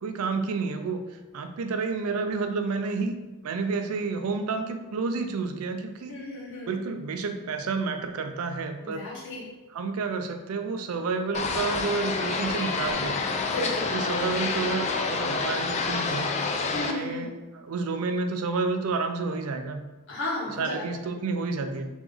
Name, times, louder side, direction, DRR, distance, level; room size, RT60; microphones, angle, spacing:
voice 1, 0.0-3.2 3.4-6.2 6.6-9.1 9.7-13.1 13.9-16.3 16.7-19.8 20.4-21.9, right 4 dB, 75° right, 7 dB, 0.4 m, -30 dB
voice 2, 6.1-6.7 8.8-9.4 13.5-13.9 16.7-17.2 20.1-20.8, left 2 dB, 55° left, -6 dB, 1.3 m, -33 dB
sound 1, 11.3-16.9, left 4 dB, 30° left, 0.3 m, -28 dB
3.4 x 3.0 x 3.5 m, 1.1 s
head